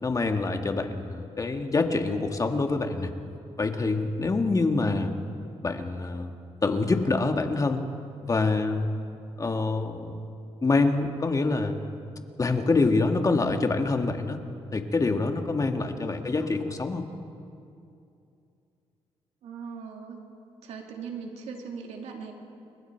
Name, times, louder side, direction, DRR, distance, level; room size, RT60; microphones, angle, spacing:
voice 1, 0.0-3.1 3.6-5.1 5.6-6.3 6.6-7.8 8.3-8.9 9.4-10.2 10.6-11.8 12.4-14.4 14.7-17.0, left 3 dB, 30° left, 5 dB, 1.8 m, -26 dB
voice 2, 4.6-5.0 15.9-16.2 19.4-20.2 20.6-22.3, right 6 dB, 90° right, 2 dB, 2.6 m, -39 dB
29.5 x 21.5 x 4.6 m, 2.6 s
cardioid pair, 90°, 11 cm